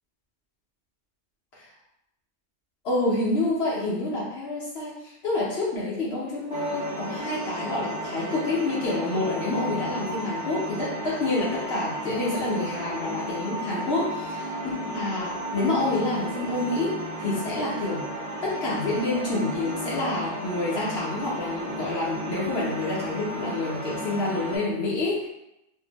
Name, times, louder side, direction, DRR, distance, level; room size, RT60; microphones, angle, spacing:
voice 1, 2.8-14.1 14.6-18.0 18.4-25.3, left 2 dB, 70° left, -6 dB, 0.9 m, -28 dB
sound 1, 6.5-24.6, equal, 60° right, 1.2 m, -34 dB
2.6 x 2.0 x 2.8 m, 0.86 s
omnidirectional pair, 1.2 m